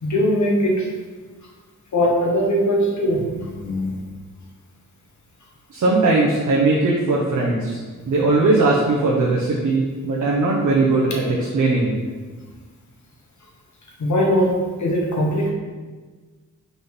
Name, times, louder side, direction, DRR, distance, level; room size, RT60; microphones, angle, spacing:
voice 1, 0.0-0.9 1.9-4.0 14.0-15.5, equal, 60° left, -3 dB, 1.3 m, -20 dB
voice 2, 5.7-7.8 8.1-11.9, right 3 dB, 65° right, -4 dB, 1.1 m, -19 dB
6.0 x 3.9 x 5.3 m, 1.4 s
wide cardioid pair, 140°, 33 cm